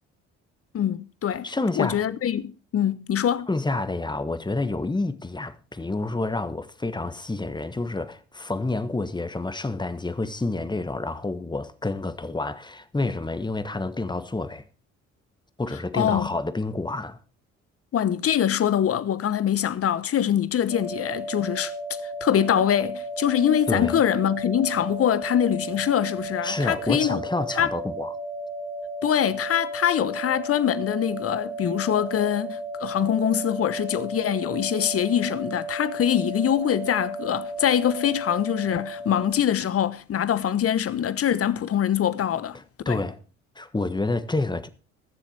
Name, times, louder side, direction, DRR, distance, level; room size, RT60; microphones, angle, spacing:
voice 1, 0.7-3.5 15.9-16.3 17.9-21.7 22.2-27.2 27.5-27.7 29.0-42.6 42.9-43.0, left 9 dB, 45° left, 1.1 m, -24 dB
voice 2, 1.4-2.0 3.5-14.6 15.6-17.2 23.7-24.0 26.4-28.1 42.5-43.2 43.6-44.7, left 2 dB, 15° left, 1.4 m, -28 dB
sound 1, 20.7-39.3, right 1 dB, 80° right, 5.3 m, -34 dB
20.5 x 7.4 x 4.5 m
hypercardioid pair, 55°, 33 cm